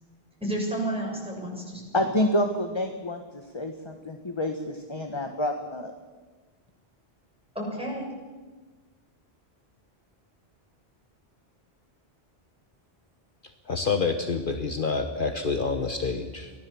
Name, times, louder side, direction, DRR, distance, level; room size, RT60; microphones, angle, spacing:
voice 1, 0.4-2.1 7.6-8.1, right 1 dB, 5° right, 6.9 m, -31 dB
voice 2, 1.9-5.9, left 1 dB, 25° left, 1.5 m, -28 dB
voice 3, 13.7-16.5, left 4 dB, 55° left, 1.3 m, -27 dB
24.0 x 17.0 x 7.2 m
omnidirectional pair, 1.1 m